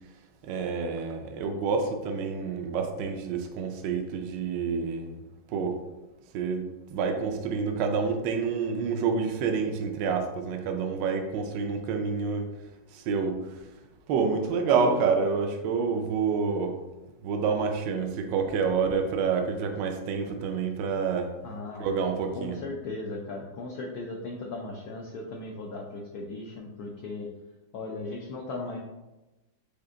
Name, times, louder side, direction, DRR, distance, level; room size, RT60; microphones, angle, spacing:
voice 1, 0.4-5.1 5.5-5.8 6.3-12.5 12.9-13.4 14.1-16.8 17.2-21.3 21.8-22.6, right 5 dB, 75° right, 4 dB, 1.1 m, -28 dB
voice 2, 21.4-21.9 22.3-27.3 27.7-28.8, left 2 dB, 85° left, -1 dB, 0.8 m, -37 dB
5.0 x 2.5 x 3.7 m, 1.0 s
omnidirectional pair, 2.3 m